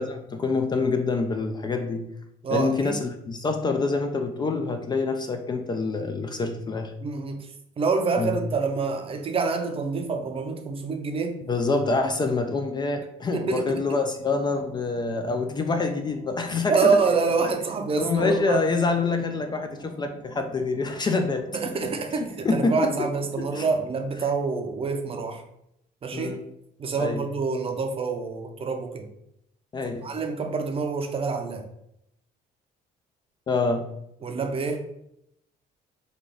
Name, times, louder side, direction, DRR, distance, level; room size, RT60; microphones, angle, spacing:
voice 1, 0.0-2.1 2.5-6.9 8.2-8.4 11.5-17.0 17.9-21.7 22.2-23.1 23.4-23.7 26.1-26.4 27.0-27.2 29.7-30.1 33.5-33.9, left 3 dB, 25° left, 5 dB, 0.4 m, -26 dB
voice 2, 2.4-3.0 7.0-7.4 7.8-11.4 13.3-14.0 16.7-18.6 21.5-25.4 26.0-26.3 26.8-29.1 30.0-31.7 34.2-34.8, right 4 dB, 35° right, 5 dB, 0.6 m, -26 dB
sound 1, 14.2-23.8, right 2 dB, 90° right, 1.0 m, -47 dB
3.3 x 2.4 x 3.8 m, 0.79 s
cardioid pair, 110°, 17 cm